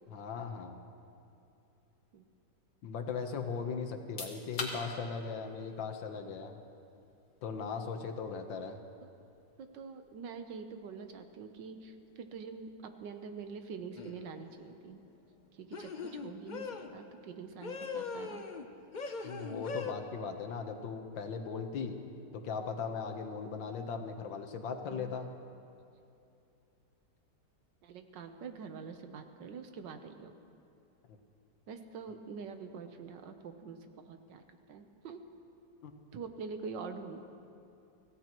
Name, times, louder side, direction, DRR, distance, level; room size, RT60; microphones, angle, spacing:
voice 1, 0.1-0.8 2.8-6.5 7.4-8.8 19.2-22.0 22.4-25.3 35.8-35.9, left 5 dB, 90° left, 5 dB, 1.8 m, -38 dB
sound 1, 3.9-16.6, left 3 dB, 55° left, 2.3 m, -50 dB
voice 2, 9.6-15.0 15.5-18.4 24.9-25.1 27.8-30.3 31.7-34.4 34.7-35.2 36.1-37.2, right 5 dB, 75° right, 7 dB, 1.6 m, -45 dB
sound 2, 14.0-14.3 15.7-16.9 17.6-18.7 18.9-19.9, left 4 dB, 70° left, 0.4 m, -40 dB
25.5 x 16.0 x 3.0 m, 2.7 s
omnidirectional pair, 2.0 m